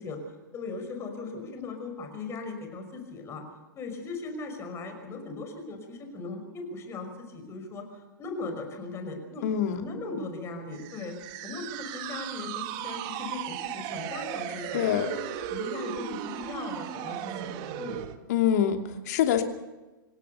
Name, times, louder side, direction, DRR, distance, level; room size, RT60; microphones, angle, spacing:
voice 1, 0.0-3.4 3.7-9.4 9.7-11.1 11.4-15.2 15.5-18.1, left 3 dB, 25° left, 5 dB, 5.7 m, -38 dB
voice 2, 9.4-9.8 14.7-15.1 18.3-19.4, left 9 dB, 50° left, 5 dB, 2.7 m, -25 dB
sound 1, 10.7-18.2, right 11 dB, 35° right, 1.6 m, -36 dB
27.0 x 16.5 x 6.9 m, 1.1 s
figure-of-eight pair, 105°, 12 cm